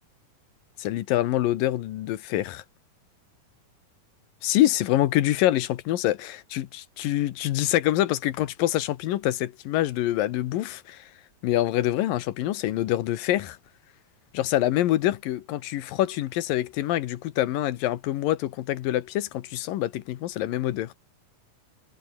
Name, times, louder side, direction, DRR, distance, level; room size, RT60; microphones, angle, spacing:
voice 1, 0.8-2.6 4.4-11.1 11.4-13.6 14.3-20.9, left 14 dB, 85° left, 2.8 m, -25 dB
omnidirectional pair, 4.0 m